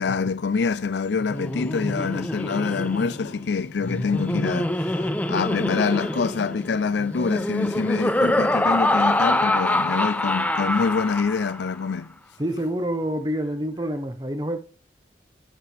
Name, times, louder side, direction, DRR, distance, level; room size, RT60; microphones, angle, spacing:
voice 1, 0.0-12.1, left 5 dB, 80° left, 0.5 m, -25 dB
Laughter, 1.2-11.7, left 1 dB, 10° left, 0.6 m, -25 dB
voice 2, 12.4-14.6, right 1 dB, 25° right, 1.1 m, -27 dB
10.5 x 9.4 x 3.5 m
head